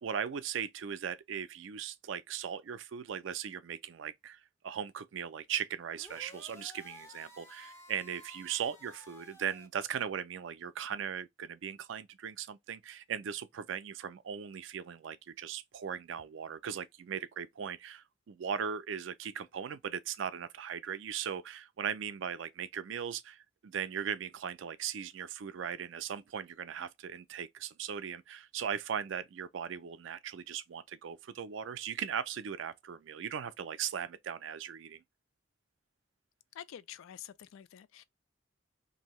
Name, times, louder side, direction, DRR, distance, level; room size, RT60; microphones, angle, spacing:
voice 1, 0.0-23.4 23.6-35.0, right 8 dB, 70° right, 0.4 m, -38 dB
sound 1, 5.9-9.7, left 1 dB, 15° left, 0.4 m, -54 dB
voice 2, 36.5-38.0, left 10 dB, 80° left, 0.3 m, -48 dB
2.7 x 2.7 x 3.0 m
head